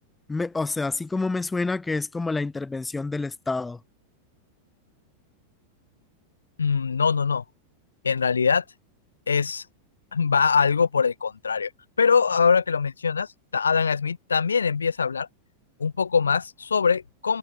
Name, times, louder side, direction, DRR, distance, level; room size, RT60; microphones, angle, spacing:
voice 1, 0.3-3.8, left 3 dB, 10° left, 3.4 m, -28 dB
voice 2, 6.6-7.4 8.0-8.6 9.3-9.6 10.1-11.7 12.0-15.3 15.8-17.4, left 5 dB, 75° left, 4.8 m, -22 dB
figure-of-eight pair, 90°, 0 cm